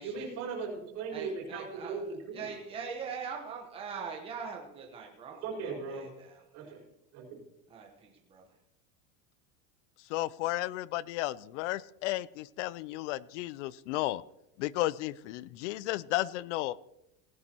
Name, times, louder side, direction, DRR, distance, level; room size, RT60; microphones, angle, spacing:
voice 1, 0.0-2.5 5.3-6.1 6.5-6.8 7.1-7.4, right 4 dB, 45° right, -2 dB, 4.6 m, -38 dB
voice 2, 1.1-2.0 2.3-5.4 5.6-6.7 7.7-8.5, right 6 dB, 15° right, 0 dB, 1.1 m, -42 dB
voice 3, 10.1-14.2 14.6-16.8, left 16 dB, 70° left, 21 dB, 0.5 m, -33 dB
18.0 x 10.5 x 3.0 m, 0.88 s
supercardioid pair, 170°, 37 cm